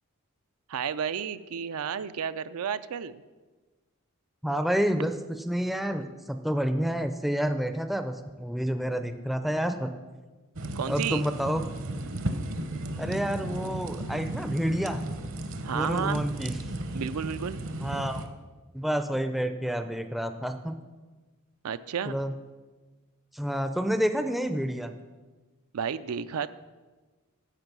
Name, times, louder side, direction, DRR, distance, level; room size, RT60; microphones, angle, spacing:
voice 1, 0.7-3.2 10.8-11.2 15.6-16.2 16.9-17.6 21.6-22.2 25.7-26.5, right 7 dB, 75° right, 13 dB, 0.4 m, -32 dB
voice 2, 4.4-9.9 10.9-11.6 13.0-15.0 15.7-16.5 17.8-18.2 18.7-20.8 22.1-22.3 23.3-24.9, equal, ahead, 8 dB, 0.5 m, -29 dB
sound 1, 10.6-18.3, right 1 dB, 60° right, 0.9 m, -35 dB
10.5 x 7.6 x 6.0 m, 1.3 s
head